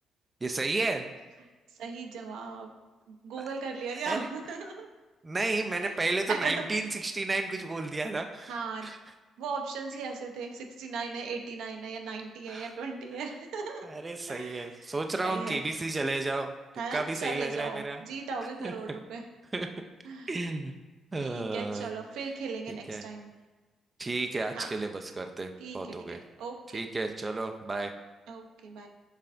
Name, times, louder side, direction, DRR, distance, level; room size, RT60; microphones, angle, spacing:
voice 1, 0.4-1.1 3.4-3.5 4.1-4.2 5.2-8.5 8.8-9.0 12.5-12.7 13.8-16.5 16.9-18.0 18.6-18.7 19.5-19.7 20.3-20.7 21.1-21.9 22.9-23.0 24.0-26.2 26.7-27.9, right 3 dB, 25° right, 5 dB, 0.3 m, -32 dB
voice 2, 1.7-2.7 3.1-4.9 5.7-6.0 6.3-6.7 8.5-8.9 9.4-13.9 14.3-14.9 15.2-15.6 16.8-19.2 20.0-20.4 21.2-23.3 24.5-24.7 25.6-26.8 28.3-28.9, right 4 dB, 85° right, 2 dB, 0.6 m, -37 dB
5.6 x 3.2 x 2.5 m, 1.2 s
cardioid pair, 90°, 0 cm